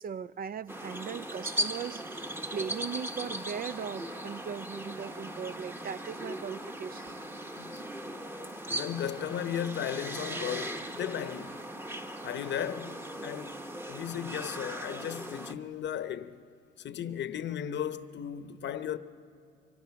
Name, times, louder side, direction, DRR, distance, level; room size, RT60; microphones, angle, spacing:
voice 1, 0.0-7.2, right 7 dB, 45° right, 0.5 m, -39 dB
sound 1, 0.7-15.5, right 1 dB, 10° right, 1.1 m, -38 dB
voice 2, 8.7-11.6 12.2-13.6 13.9-16.4 16.8-19.0, left 9 dB, 65° left, 0.9 m, -36 dB
24.5 x 24.5 x 5.9 m
cardioid pair, 90°, 20 cm